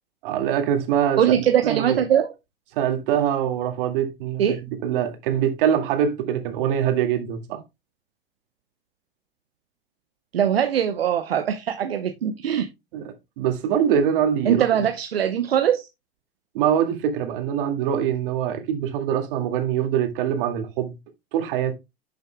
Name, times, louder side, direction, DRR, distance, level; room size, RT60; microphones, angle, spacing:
voice 1, 0.2-1.2 1.6-2.0 2.8-4.6 4.8-7.6 12.9-14.6 16.5-20.9 21.3-21.7, right 9 dB, 65° right, 2.1 m, -23 dB
voice 2, 1.2-2.3 4.4-4.6 10.3-12.7 14.5-15.9, right 9 dB, 80° right, 0.9 m, -21 dB
11.0 x 6.5 x 2.2 m
hypercardioid pair, 85°, 29 cm